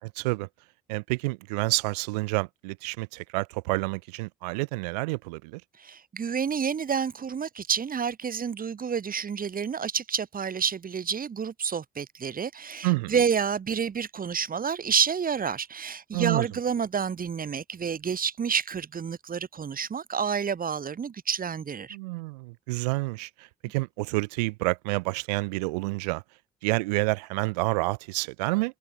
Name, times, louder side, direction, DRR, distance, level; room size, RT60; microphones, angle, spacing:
voice 1, 0.0-0.5 0.9-5.6 12.8-13.1 16.1-16.5 21.9-26.2 26.6-28.8, right 25 dB, 75° right, 3.2 m, -29 dB
voice 2, 5.8-22.0, right 6 dB, 45° right, 4.3 m, -29 dB
figure-of-eight pair, 40°, 21 cm